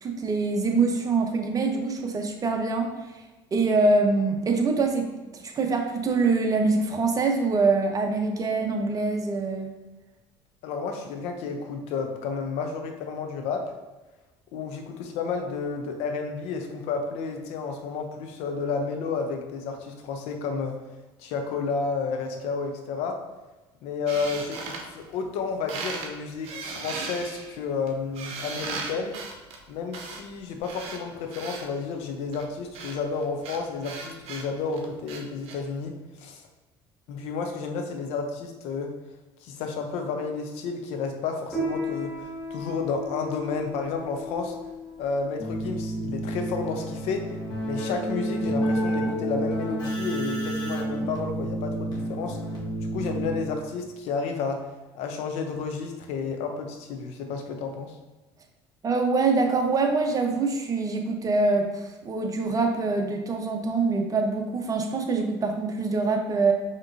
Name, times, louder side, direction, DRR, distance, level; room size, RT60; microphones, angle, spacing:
voice 1, 0.0-2.9 3.5-5.1 5.4-9.7 58.8-66.5, right 3 dB, 30° right, 3 dB, 0.7 m, -24 dB
voice 2, 10.6-13.7 14.5-20.8 21.2-23.2 23.8-29.2 29.7-36.4 37.1-38.9 39.4-44.6 45.0-47.3 47.6-52.4 52.9-54.7 54.9-58.0, left 4 dB, 70° left, 4 dB, 0.7 m, -31 dB
sound 1, 24.1-25.4 25.7-26.1 26.4-31.7 32.3-35.6, right 4 dB, 65° right, 0.7 m, -37 dB
Piano, 41.5-51.4, left 1 dB, 5° right, 1.2 m, -37 dB
Keyboard (musical), 45.4-53.7, right 1 dB, 40° left, 1.4 m, -30 dB
5.1 x 3.0 x 2.6 m, 1.2 s
supercardioid pair, 80°, 11 cm